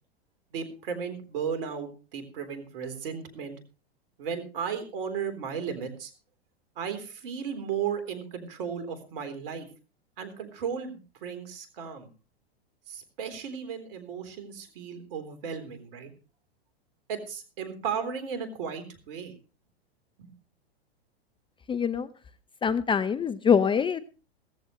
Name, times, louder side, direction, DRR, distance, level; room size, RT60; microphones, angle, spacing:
voice 1, 0.5-3.6 4.2-6.1 6.8-9.7 10.2-12.1 12.9-16.1 17.1-19.4 20.2-20.3, right 7 dB, 60° right, 9 dB, 3.8 m, -35 dB
voice 2, 21.7-22.1 22.6-24.0, left 7 dB, 15° left, 14 dB, 0.7 m, -24 dB
17.0 x 14.5 x 3.1 m, 0.33 s
hypercardioid pair, 105°, 31 cm